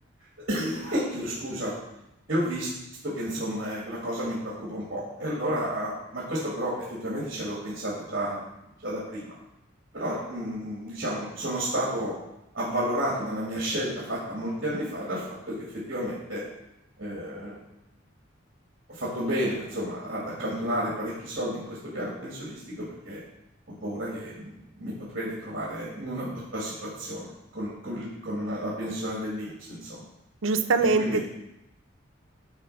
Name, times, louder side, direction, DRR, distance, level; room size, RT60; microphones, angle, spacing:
voice 1, 0.5-1.7 2.3-2.7 3.0-8.4 8.8-9.3 9.9-12.1 12.5-15.6 15.9-16.4 17.0-17.6 18.9-23.2 23.8-27.3 27.5-30.0 30.8-31.2, equal, 55° right, -6 dB, 2.2 m, -31 dB
voice 2, 30.4-31.3, right 3 dB, 85° right, 8 dB, 0.7 m, -23 dB
9.8 x 4.2 x 5.6 m, 0.89 s
head